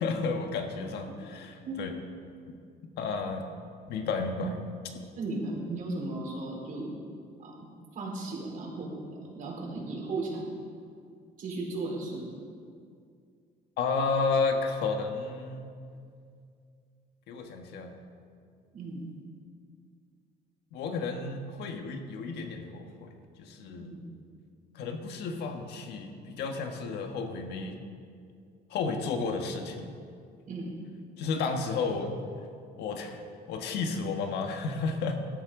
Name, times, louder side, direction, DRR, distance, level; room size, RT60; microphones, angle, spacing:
voice 1, 0.0-1.9 3.0-3.5 3.9-4.6 13.8-15.7 17.3-17.9 20.7-23.9 24.7-27.8 28.7-29.9 31.2-32.1 32.8-33.2 33.5-35.2, left 4 dB, 80° left, 4 dB, 1.5 m, -32 dB
voice 2, 5.1-7.0 7.4-7.7 7.9-10.5 11.4-12.3 18.7-19.1 23.8-24.0 30.5-30.7, right 2 dB, 50° right, -3 dB, 4.2 m, -36 dB
18.0 x 13.0 x 3.8 m, 2.3 s
cardioid pair, 110°, 17 cm